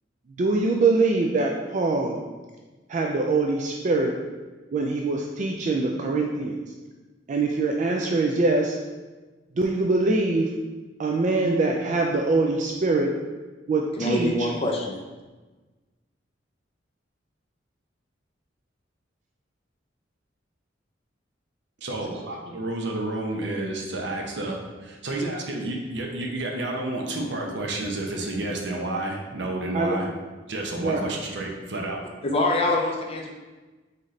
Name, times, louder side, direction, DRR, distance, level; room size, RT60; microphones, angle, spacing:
voice 1, 0.4-2.2 2.9-4.1 4.7-6.6 7.3-8.8 9.6-10.5 11.0-13.1 13.7-14.5 29.7-30.0 30.8-31.0, right 3 dB, 40° right, 1 dB, 0.3 m, -23 dB
voice 2, 14.0-15.0 32.2-33.3, left 2 dB, 30° left, 1 dB, 0.5 m, -24 dB
voice 3, 21.8-30.1 30.5-32.0, right 2 dB, 65° right, 0 dB, 0.7 m, -30 dB
4.1 x 3.9 x 3.1 m, 1.3 s
head